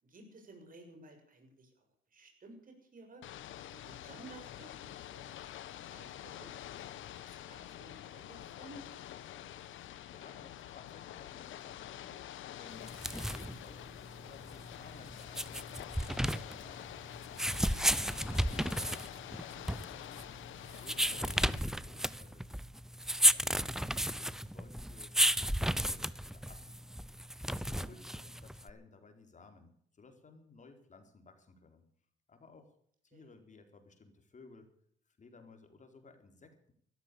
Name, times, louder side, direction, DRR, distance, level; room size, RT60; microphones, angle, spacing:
voice 1, 0.0-1.9 2.1-3.2 3.7-5.5 5.9-6.6 7.2-8.8 20.1-20.4 27.8-28.0 33.1-33.2, right 2 dB, 45° right, 4 dB, 7.1 m, -55 dB
Ocean / Boat Water vehicle, 3.2-21.6, left 12 dB, 75° left, 1.4 m, -47 dB
voice 2, 10.1-15.6 16.0-17.4 17.8-20.3 20.6-22.6 23.3-26.8 27.3-31.8 32.3-32.8 33.0-34.7 35.1-36.7, left 3 dB, 40° left, 6 dB, 4.2 m, -58 dB
sound 1, 12.8-28.7, equal, ahead, 0.7 m, -33 dB
15.0 x 14.0 x 6.9 m, 0.64 s
cardioid pair, 90°, 20 cm